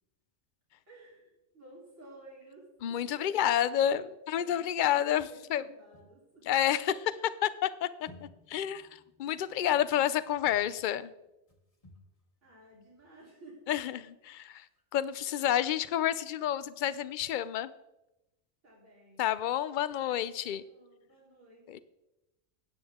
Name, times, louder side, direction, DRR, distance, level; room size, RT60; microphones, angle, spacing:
voice 1, 0.8-3.4 4.3-5.0 5.3-6.6 6.8-6.9 12.4-14.0 15.2-15.3 18.6-19.3 20.5-21.8, right 2 dB, 90° right, -7 dB, 4.1 m, -54 dB
voice 2, 2.8-5.6 6.5-7.0 7.4-8.1 8.5-11.1 13.7-14.7 14.9-17.7 19.2-20.6 21.7-21.8, left 11 dB, 55° left, 16 dB, 0.6 m, -29 dB
sound 1, 5.9-7.3 8.1-13.1 13.4-13.5 13.8-13.9 14.2-14.3 14.4-14.8, left 2 dB, 30° left, 1.9 m, -59 dB
16.0 x 9.1 x 3.6 m, 0.95 s
omnidirectional pair, 1.2 m